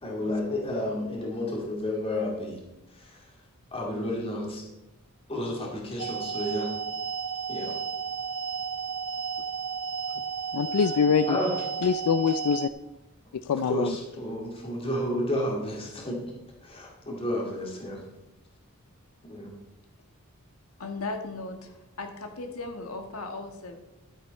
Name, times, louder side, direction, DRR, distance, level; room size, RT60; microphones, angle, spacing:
voice 1, 0.0-2.6 2.9-3.3 3.7-4.6 5.3-6.7 7.5-7.8 11.3-11.5 13.7-16.2 16.6-18.0 19.2-19.5, left 1 dB, 25° left, -1 dB, 2.4 m, -31 dB
sound 1, 6.0-12.7, right 6 dB, 75° right, 0.6 m, -33 dB
voice 2, 10.5-11.4 11.8-12.7 13.3-14.0, left 6 dB, 90° left, 12 dB, 0.4 m, -24 dB
voice 3, 20.8-23.7, left 3 dB, 70° left, 5 dB, 1.6 m, -37 dB
12.5 x 8.1 x 4.2 m, 0.96 s
head